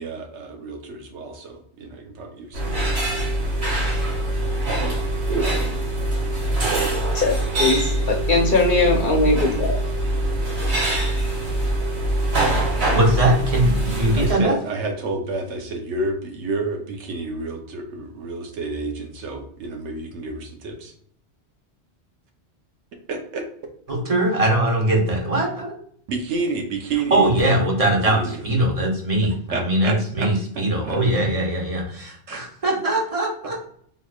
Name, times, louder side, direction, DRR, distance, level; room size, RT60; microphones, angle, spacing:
voice 1, 0.0-3.2 14.2-20.9 23.1-23.4 26.1-27.3 28.1-28.4 29.2-30.3 30.8-31.0 32.3-32.4, right 3 dB, 85° right, 3 dB, 1.0 m, -30 dB
sound 1, 2.5-14.3, right 1 dB, 65° right, 1.5 m, -23 dB
voice 2, 7.1-7.8 8.3-9.7, left 3 dB, 50° left, 0 dB, 0.8 m, -19 dB
voice 3, 12.9-14.5 23.9-25.8 27.1-33.7, right 1 dB, 35° right, -2 dB, 1.0 m, -21 dB
3.7 x 3.0 x 2.3 m, 0.62 s
omnidirectional pair, 1.2 m